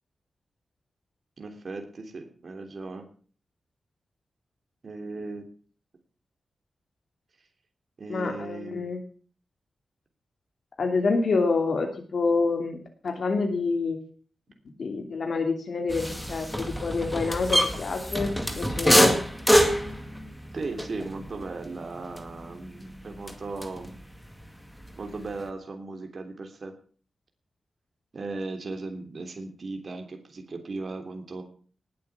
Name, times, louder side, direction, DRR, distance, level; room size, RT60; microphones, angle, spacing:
voice 1, 1.4-3.0 4.8-5.4 8.0-8.9 20.5-23.9 25.0-26.7 28.1-31.4, right 3 dB, 45° right, 4 dB, 3.3 m, -37 dB
voice 2, 8.1-9.0 10.8-12.8 13.0-14.0 14.8-19.2, left 4 dB, 60° left, 4 dB, 2.7 m, -27 dB
sound 1, 15.9-24.0 24.3-25.5, equal, 5° left, 2.2 m, -26 dB
19.0 x 8.5 x 7.1 m, 0.43 s
wide cardioid pair, 145°, 0 cm